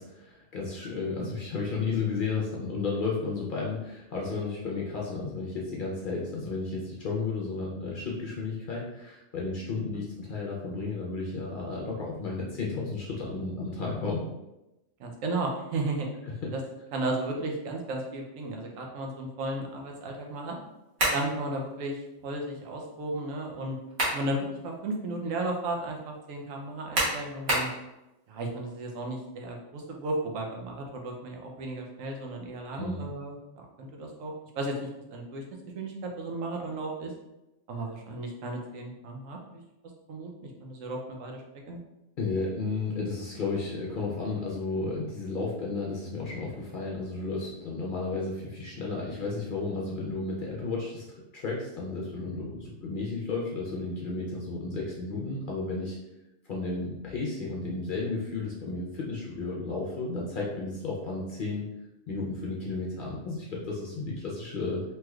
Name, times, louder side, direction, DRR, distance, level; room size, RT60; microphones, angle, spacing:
voice 1, 0.0-14.2 16.4-16.5 32.8-33.1 42.2-56.0 56.5-61.6 62.1-64.8, left 3 dB, 55° left, -4 dB, 0.6 m, -33 dB
voice 2, 15.0-16.1 16.5-16.6 16.9-20.5 21.1-22.0 22.2-23.8 24.1-27.7 28.3-35.4 35.7-37.1 37.7-39.6 40.1-41.4 41.7-41.8, right 2 dB, 90° right, 1 dB, 1.0 m, -34 dB
sound 1, 21.0-21.3 23.6-24.3 24.8-24.9 26.9-27.8, right 1 dB, 55° right, 1.3 m, -27 dB
3.1 x 3.0 x 2.3 m, 0.95 s
omnidirectional pair, 1.3 m